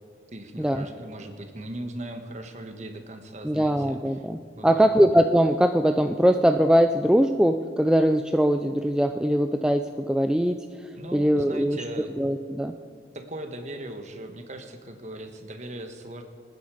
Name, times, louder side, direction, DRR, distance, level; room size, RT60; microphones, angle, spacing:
voice 1, 0.3-4.2 4.5-4.9 11.0-12.1 13.1-16.2, right 1 dB, 40° right, 6 dB, 1.4 m, -39 dB
voice 2, 3.4-10.6 11.1-11.8 12.2-12.7, equal, 5° right, 6 dB, 0.3 m, -21 dB
27.0 x 9.6 x 5.0 m, 2.2 s
head